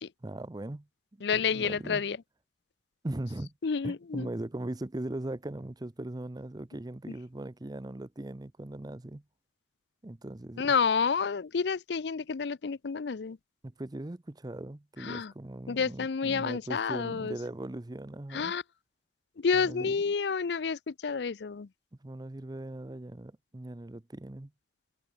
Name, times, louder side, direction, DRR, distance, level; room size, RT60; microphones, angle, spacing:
voice 1, 0.2-0.9 1.1-2.0 3.0-3.5 3.8-9.2 10.0-10.7 13.6-18.5 19.5-20.0 22.0-24.5, right 1 dB, 20° right, 0.6 m, -39 dB
voice 2, 1.2-2.2 3.6-4.3 7.1-7.2 10.6-13.4 15.0-15.3 15.7-17.4 18.3-18.6 19.4-21.7, left 5 dB, 70° left, 0.5 m, -29 dB
head